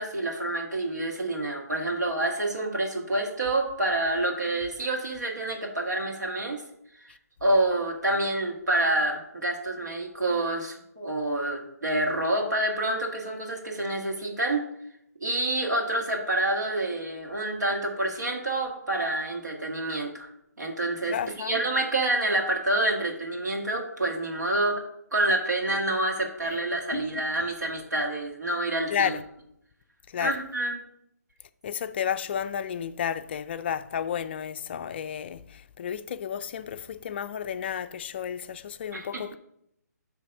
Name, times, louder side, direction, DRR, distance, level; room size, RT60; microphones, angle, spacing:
voice 1, 0.0-6.6 7.4-14.7 15.2-20.3 20.6-24.8 25.1-29.2 30.2-30.8 38.9-39.2, right 1 dB, 80° right, 2.0 m, -27 dB
voice 2, 21.1-21.6 26.9-27.1 28.9-29.2 30.1-30.4 31.6-39.4, left 8 dB, 35° left, 0.4 m, -32 dB
7.8 x 3.4 x 6.0 m
figure-of-eight pair, 145°, 9 cm